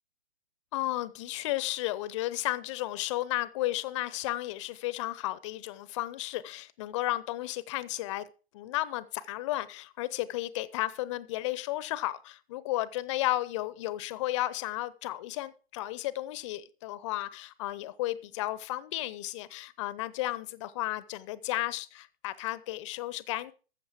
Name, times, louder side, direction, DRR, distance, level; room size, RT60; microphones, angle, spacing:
voice 1, 0.7-8.3 8.5-23.5, left 16 dB, 30° left, 0.7 m, -33 dB
13.5 x 7.5 x 4.7 m
figure-of-eight pair, 125°, 31 cm